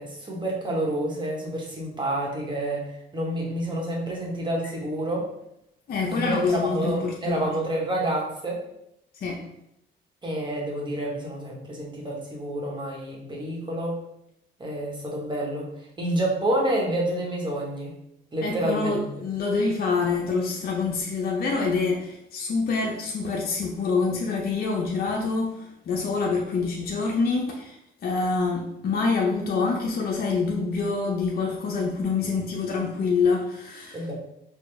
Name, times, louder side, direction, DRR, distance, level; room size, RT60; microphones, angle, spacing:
voice 1, 0.0-5.3 6.1-8.6 10.2-14.0 14.6-15.7 16.0-18.0 18.3-19.0 33.9-34.1, right 1 dB, 25° right, -2 dB, 1.2 m, -28 dB
voice 2, 5.9-7.5 9.2-9.4 18.4-34.0, left 4 dB, 50° left, -1 dB, 0.6 m, -26 dB
4.3 x 2.3 x 3.2 m, 0.78 s
cardioid pair, 90°, 20 cm